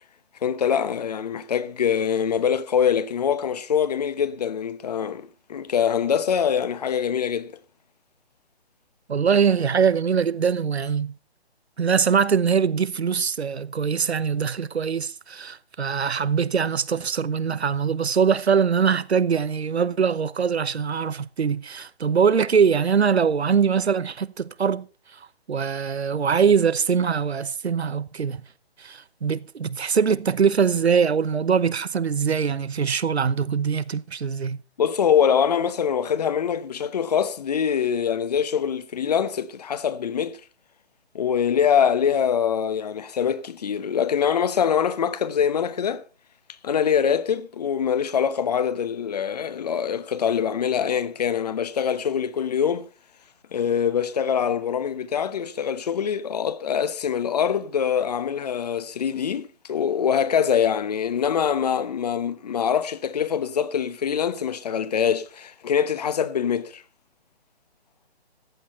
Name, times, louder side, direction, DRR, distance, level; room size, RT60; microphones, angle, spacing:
voice 1, 0.4-7.5 34.8-40.4 41.1-46.0 46.6-52.9 53.5-66.8, left 8 dB, 40° left, 1.0 m, -24 dB
voice 2, 9.1-11.2 11.8-24.9 25.5-28.4 28.8-34.6, right 6 dB, 80° right, 0.9 m, -22 dB
14.5 x 9.9 x 4.2 m
figure-of-eight pair, 150°, 32 cm